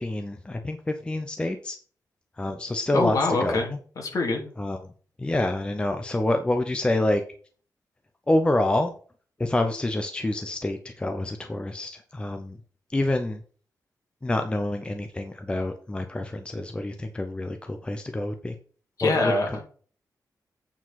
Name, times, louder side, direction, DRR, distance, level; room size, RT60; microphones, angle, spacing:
voice 1, 0.0-1.8 2.4-3.2 3.4-3.8 4.6-4.9 5.2-7.2 8.3-8.9 9.4-12.6 12.9-13.4 14.2-18.5 19.0-19.6, left 1 dB, 15° left, 6 dB, 0.7 m, -27 dB
voice 2, 2.9-3.7 4.0-4.5 19.0-19.6, left 3 dB, 60° left, 1 dB, 2.8 m, -24 dB
8.7 x 4.7 x 5.8 m, 0.42 s
wide cardioid pair, 170°, 7 cm